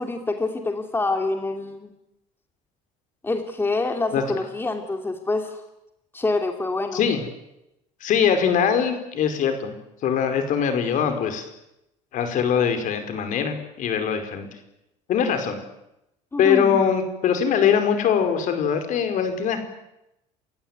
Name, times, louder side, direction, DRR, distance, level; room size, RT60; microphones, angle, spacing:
voice 1, 0.0-1.9 3.2-5.6 6.1-7.0 16.3-16.8, left 3 dB, 15° left, 5 dB, 2.8 m, -26 dB
voice 2, 8.0-9.7 10.0-11.4 12.1-14.5 15.1-15.6 16.4-19.6, left 7 dB, 55° left, 7 dB, 5.0 m, -22 dB
29.5 x 16.0 x 9.5 m, 0.87 s
cardioid pair, 110°, 15 cm